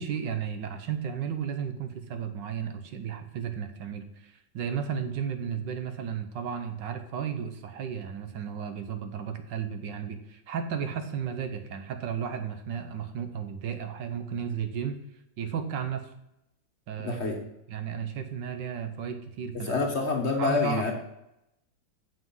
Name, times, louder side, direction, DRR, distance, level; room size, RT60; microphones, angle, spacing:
voice 1, 0.0-15.0 15.4-16.1 16.9-17.2 17.7-19.7 20.4-20.9, right 7 dB, 75° right, 8 dB, 1.6 m, -34 dB
voice 2, 17.0-17.4 19.5-20.9, left 3 dB, 45° left, 2 dB, 1.2 m, -27 dB
7.5 x 6.1 x 5.5 m, 0.86 s
omnidirectional pair, 2.0 m